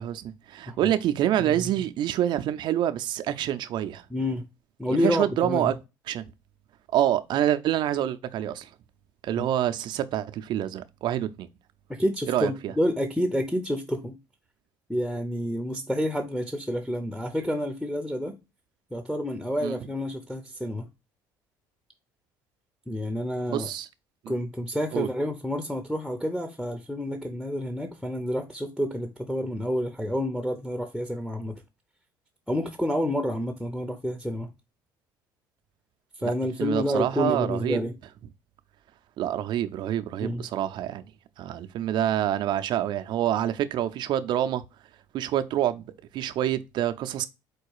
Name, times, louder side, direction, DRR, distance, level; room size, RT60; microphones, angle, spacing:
voice 1, 0.0-4.0 4.9-5.7 6.1-6.2 6.9-8.7 9.2-11.5 12.3-12.7 19.6-19.8 23.5-23.9 24.2-24.3 24.9-25.1 36.2-36.3 36.6-37.8 39.2-41.0 41.4-44.6 45.1-47.3, right 11 dB, 60° right, 0.5 m, -27 dB
voice 2, 1.4-1.7 4.1-4.4 4.8-5.7 9.4-9.5 12.0-14.2 14.9-18.4 18.9-20.9 22.9-23.7 24.3-31.6 32.5-34.5 36.2-37.9 40.2-40.4, equal, ahead, 0.7 m, -29 dB
4.6 x 2.3 x 4.7 m
supercardioid pair, 80°, 9 cm